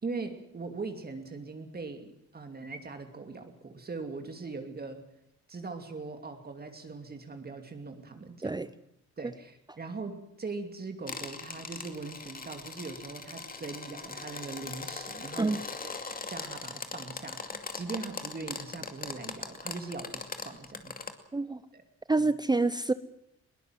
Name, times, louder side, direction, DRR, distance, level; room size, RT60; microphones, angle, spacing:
voice 1, 0.0-5.0 5.5-8.7 9.2-16.0 16.3-21.0 21.7-21.9 22.2-22.3, right 3 dB, 30° right, 6 dB, 2.6 m, -41 dB
sound 1, 11.1-21.1, left 4 dB, 30° left, 2.5 m, -40 dB
voice 2, 22.1-22.9, right 3 dB, 15° right, 14 dB, 0.7 m, -27 dB
21.5 x 18.5 x 7.6 m, 0.78 s
cardioid pair, 90°, 30 cm